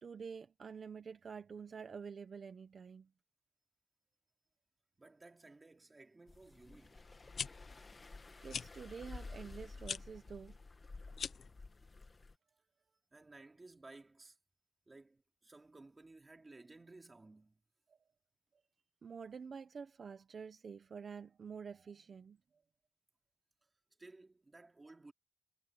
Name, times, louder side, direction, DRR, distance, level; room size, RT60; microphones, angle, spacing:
voice 1, 0.0-3.1 8.4-10.6 19.0-22.4, right 6 dB, 60° right, 0.9 m, -48 dB
voice 2, 5.0-7.1 13.1-14.4 14.9-17.6 24.0-25.1, right 2 dB, 25° right, 3.2 m, -57 dB
sound 1, 6.3-12.3, left 3 dB, 30° left, 1.7 m, -52 dB
sound 2, 7.2-7.5 8.5-8.7 9.8-10.0 11.1-11.5, left 6 dB, 75° left, 0.7 m, -40 dB
wide cardioid pair, 160°, 0 cm